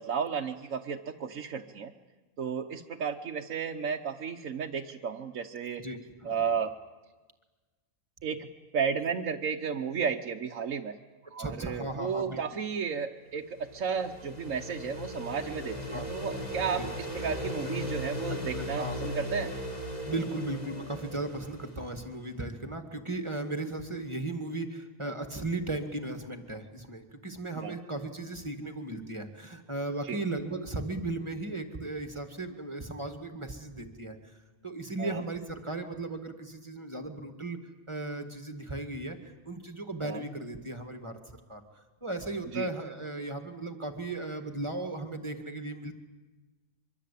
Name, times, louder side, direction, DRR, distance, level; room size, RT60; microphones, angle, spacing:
voice 1, 0.0-1.9 2.4-5.8 6.2-6.7 8.2-8.5 8.7-11.0 11.3-19.5 27.6-27.7 30.1-30.2 35.0-35.2 40.0-40.2 42.5-42.7, right 6 dB, 70° right, 1 dB, 1.3 m, -33 dB
voice 2, 5.8-6.5 11.4-12.4 15.9-16.1 16.8-16.9 18.3-19.0 20.1-37.6 37.9-45.9, right 2 dB, 20° right, 6 dB, 1.9 m, -36 dB
sound 1, 13.3-22.1, equal, 30° left, 3.4 m, -37 dB
24.5 x 24.0 x 8.4 m, 1.3 s
omnidirectional pair, 1.4 m